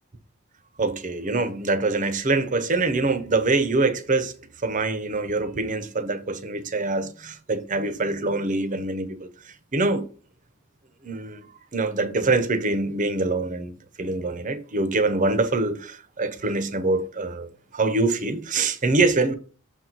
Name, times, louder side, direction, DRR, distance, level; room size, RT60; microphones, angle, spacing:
voice 1, 0.8-4.3 4.6-10.0 11.0-11.5 11.7-19.3, right 3 dB, 35° right, 0.7 m, -24 dB
6.6 x 4.5 x 4.0 m
head